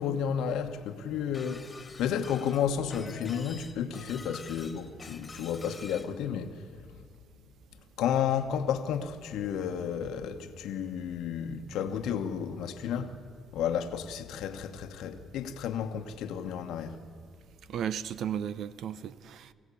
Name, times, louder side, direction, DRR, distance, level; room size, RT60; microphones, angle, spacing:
voice 1, 0.0-6.6 8.0-13.2 13.5-17.0, left 8 dB, 85° left, 1.2 m, -32 dB
Shatter, 1.3-6.1, left 3 dB, 25° left, 1.6 m, -47 dB
voice 2, 17.7-19.5, right 9 dB, 75° right, 0.7 m, -34 dB
24.5 x 16.0 x 8.4 m
cardioid pair, 90°, 0 cm